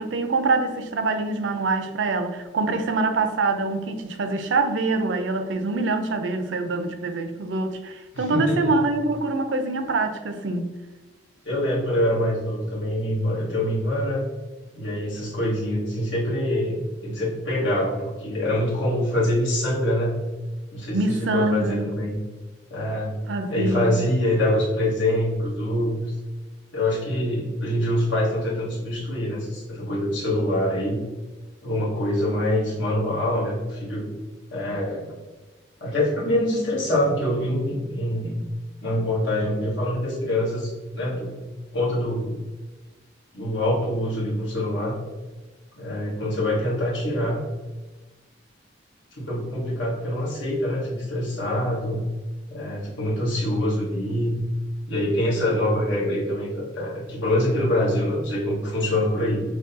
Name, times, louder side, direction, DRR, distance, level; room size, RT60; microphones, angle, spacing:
voice 1, 0.0-10.7 20.9-21.9 23.3-24.0, right 3 dB, 85° right, 8 dB, 0.5 m, -25 dB
voice 2, 8.1-8.7 11.4-14.2 14.7-20.2 20.7-22.2 22.7-23.2 23.5-26.0 26.7-31.0 31.6-34.1 34.5-35.2 35.8-38.5 38.8-41.4 41.7-42.4 43.3-44.9 45.7-47.4 49.1-52.0 52.5-54.4 54.9-59.4, left 1 dB, 90° left, -5 dB, 1.3 m, -25 dB
6.2 x 2.2 x 2.6 m, 1.2 s
head